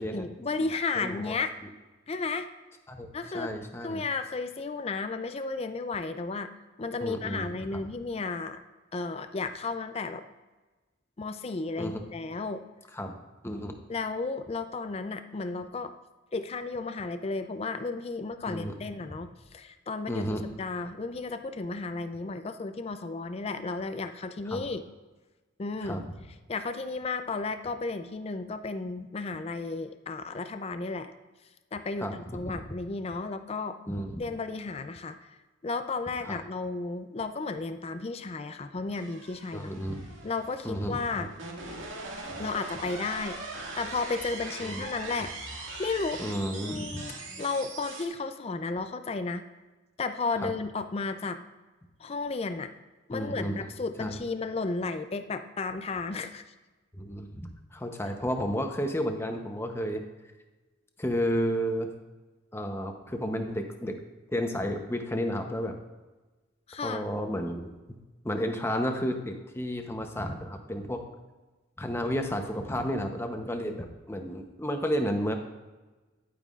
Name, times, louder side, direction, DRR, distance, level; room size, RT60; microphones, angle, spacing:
voice 1, 0.0-1.5 2.1-2.5 3.1-6.5 6.8-8.6 8.9-10.2 11.2-12.6 13.9-15.9 16.3-24.8 25.6-26.0 26.5-31.1 31.7-33.8 34.2-35.2 35.6-39.7 40.2-41.3 42.4-43.4 43.8-46.2 46.6-47.1 47.4-49.4 50.0-51.4 52.0-52.7 53.1-56.4 66.7-67.0, left 3 dB, 30° left, 9 dB, 0.4 m, -33 dB
voice 2, 0.9-1.4 2.9-4.0 7.0-7.8 11.8-12.0 12.9-13.2 13.4-13.7 18.5-18.7 20.1-20.4 24.5-24.6 25.8-26.0 32.0-32.5 33.9-34.2 36.2-36.4 39.5-40.1 40.6-41.3 44.6-44.9 46.2-47.0 50.4-50.5 53.1-53.7 54.0-54.2 56.9-60.0 61.0-61.9 62.5-64.0 64.3-65.8 66.8-67.6 68.2-71.0 71.8-75.3, equal, 10° left, 5 dB, 0.8 m, -32 dB
sound 1, 38.9-48.1, right 2 dB, 80° right, 1.9 m, -41 dB
10.5 x 9.0 x 2.4 m, 1.2 s
head